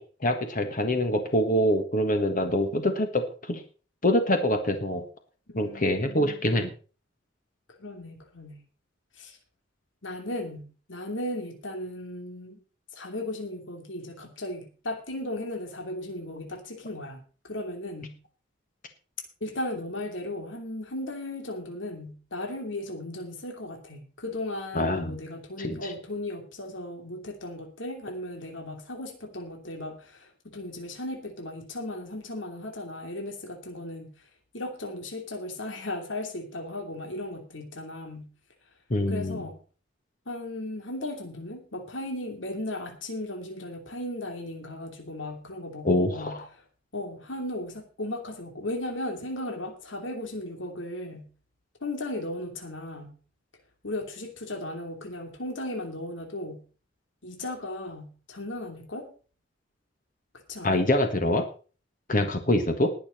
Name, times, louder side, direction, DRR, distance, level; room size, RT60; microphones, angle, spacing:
voice 1, 0.0-3.6 4.0-5.0 5.6-6.7 24.7-25.2 25.6-25.9 38.9-39.4 45.8-46.5 60.6-61.4 62.1-62.9, left 1 dB, 45° left, 6 dB, 1.5 m, -25 dB
voice 2, 5.5-6.5 7.8-8.6 9.1-9.4 10.0-12.6 12.9-18.2 19.4-34.3 34.5-38.3 39.1-39.6 40.3-46.4 46.9-51.3 51.8-53.1 53.8-56.6 57.2-59.1 60.5-60.8, left 1 dB, 90° left, 4 dB, 2.8 m, -36 dB
20.5 x 7.0 x 4.4 m, 0.37 s
head